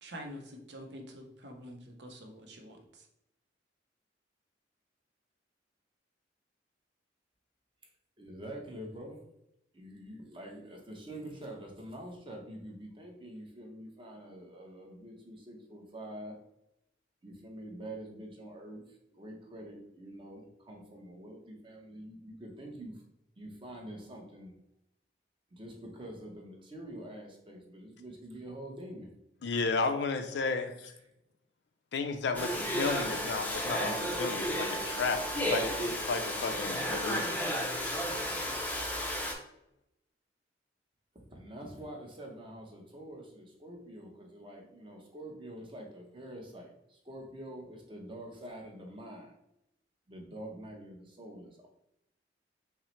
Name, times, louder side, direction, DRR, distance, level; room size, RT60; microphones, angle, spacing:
voice 1, 0.0-3.1, equal, 65° right, 0.7 m, -47 dB
voice 2, 8.2-9.2 9.7-16.4 17.2-23.0 23.4-24.5 25.5-29.1 30.1-30.4 30.9-31.1 41.1-49.3 50.1-51.7, right 1 dB, 30° right, 0.8 m, -46 dB
voice 3, 29.4-30.9 31.9-35.2 35.5-37.4, left 4 dB, 65° left, 0.4 m, -33 dB
Domestic sounds home sounds, 32.3-39.3, equal, 10° left, 0.5 m, -33 dB
5.5 x 2.0 x 3.1 m
head